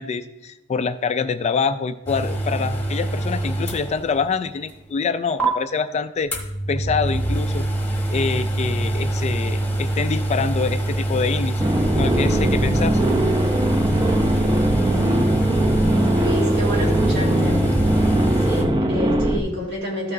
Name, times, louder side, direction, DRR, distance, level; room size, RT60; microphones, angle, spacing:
voice 1, 0.0-7.7 8.1-13.0, left 5 dB, 30° left, 11 dB, 0.3 m, -25 dB
sound 1, 2.1-4.4 4.7-4.8 5.4-5.5 6.3-18.6, right 1 dB, 10° left, 1.1 m, -24 dB
sound 2, 11.6-19.4, right 1 dB, 20° right, 0.6 m, -20 dB
voice 2, 16.2-17.7 18.3-20.1, equal, 55° right, -2 dB, 2.1 m, -29 dB
13.5 x 5.9 x 2.6 m, 0.88 s
head